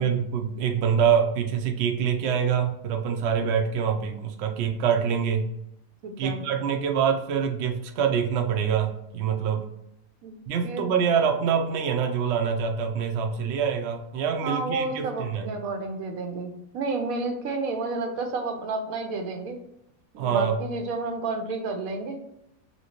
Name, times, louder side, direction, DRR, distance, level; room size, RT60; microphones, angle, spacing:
voice 1, 0.0-5.4 6.2-9.6 10.5-15.5 20.2-20.6, right 7 dB, 65° right, 3 dB, 0.7 m, -25 dB
voice 2, 6.0-6.4 10.2-10.3 10.6-10.8 14.4-19.6 20.1-22.2, right 3 dB, 85° right, 5 dB, 1.1 m, -31 dB
3.1 x 2.9 x 2.9 m, 0.81 s
omnidirectional pair, 1.4 m